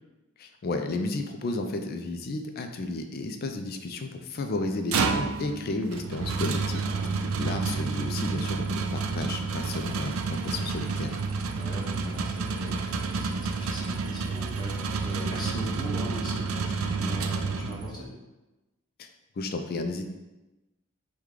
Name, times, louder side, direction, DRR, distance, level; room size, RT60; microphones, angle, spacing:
voice 1, 0.4-6.9 7.4-11.2 19.0-19.1 19.4-20.0, left 2 dB, 50° left, 6 dB, 0.4 m, -32 dB
sound 1, 4.6-18.1, right 4 dB, 75° right, 0.4 m, -30 dB
voice 2, 6.8-7.7 11.5-18.1, equal, 20° left, -4 dB, 0.9 m, -40 dB
4.7 x 2.2 x 3.6 m, 1.1 s
head